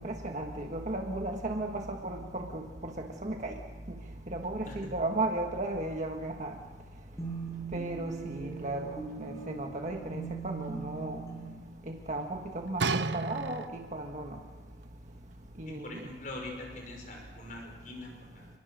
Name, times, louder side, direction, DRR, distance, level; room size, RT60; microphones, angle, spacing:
voice 1, 0.0-2.9 3.2-3.5 3.9-4.0 4.3-6.5 7.7-11.2 11.9-14.4 15.6-16.0, right 2 dB, 40° right, 2 dB, 1.6 m, -35 dB
sound 1, 7.2-11.5, right 5 dB, 15° left, 7.2 m, -40 dB
sound 2, 12.8-14.1 14.8-14.9, right 4 dB, 75° right, 0.9 m, -32 dB
voice 2, 15.7-18.5, left 2 dB, 45° left, 1 dB, 5.8 m, -43 dB
29.0 x 22.0 x 6.5 m, 1.4 s
head